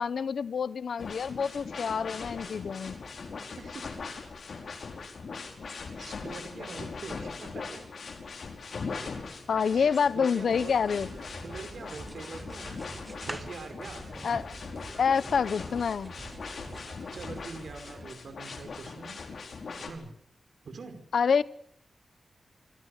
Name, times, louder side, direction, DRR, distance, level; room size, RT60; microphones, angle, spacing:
voice 1, 0.0-3.0 9.5-11.1 14.2-14.6 15.0-16.1 21.1-21.4, left 6 dB, 75° left, 16 dB, 1.0 m, -27 dB
sound 1, 1.0-19.9, left 4 dB, 60° left, 5.1 m, -41 dB
voice 2, 6.0-7.8 9.5-10.8 11.4-12.8 13.2-14.1 17.1-19.2 19.9-20.1 20.6-21.0, right 4 dB, 65° right, 8 dB, 5.3 m, -44 dB
sound 2, 10.5-18.0, right 2 dB, 35° right, 7.5 m, -47 dB
sound 3, 11.9-14.7 15.1-16.9, right 1 dB, 15° right, 1.3 m, -47 dB
28.0 x 24.5 x 6.7 m, 0.66 s
wide cardioid pair, 165°, 0 cm